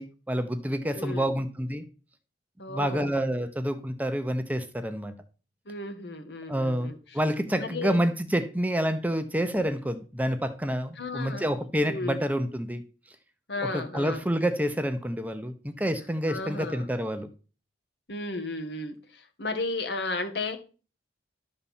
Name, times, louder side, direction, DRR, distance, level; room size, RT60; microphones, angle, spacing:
voice 1, 0.0-1.8 2.7-5.1 6.5-12.8 13.6-17.3, equal, 10° right, 8 dB, 0.7 m, -28 dB
voice 2, 1.0-1.3 2.6-3.1 5.7-7.0 7.6-8.0 11.0-11.5 11.9-12.2 13.5-14.2 16.3-16.8 18.1-20.6, left 2 dB, 70° left, 7 dB, 1.6 m, -34 dB
12.0 x 4.2 x 7.2 m, 0.35 s
head